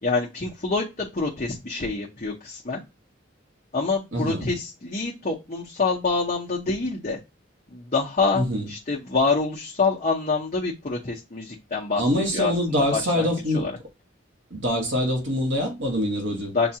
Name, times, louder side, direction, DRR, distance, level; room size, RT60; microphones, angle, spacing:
voice 1, 0.0-2.8 3.7-7.2 7.7-12.0 12.3-12.5 12.9-13.8 16.5-16.8, left 4 dB, 35° left, 0.7 m, -26 dB
voice 2, 4.1-4.5 8.3-8.7 12.0-13.7 14.5-16.5, equal, 70° right, 1.2 m, -24 dB
6.9 x 2.4 x 2.8 m
head